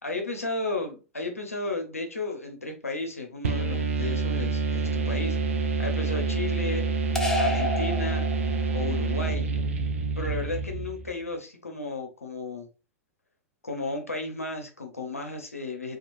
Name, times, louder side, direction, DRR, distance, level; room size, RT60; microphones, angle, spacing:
voice 1, 0.0-5.4 5.8-6.9 7.4-8.3 8.7-9.5 10.2-12.7 13.6-16.0, left 2 dB, 90° left, 0.6 m, -33 dB
sound 1, 3.4-11.1, right 4 dB, 75° right, 0.5 m, -27 dB
sound 2, 7.2-8.8, left 1 dB, 5° left, 0.5 m, -29 dB
2.9 x 2.3 x 2.4 m
figure-of-eight pair, 100°, 8 cm